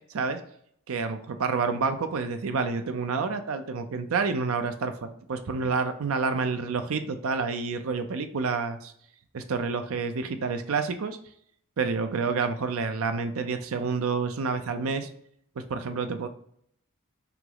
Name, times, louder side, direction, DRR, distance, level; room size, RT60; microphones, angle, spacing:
voice 1, 0.9-8.9 9.3-11.2 11.8-15.1 15.6-16.3, right 4 dB, 70° right, 8 dB, 0.5 m, -29 dB
5.7 x 2.0 x 3.8 m, 0.66 s
head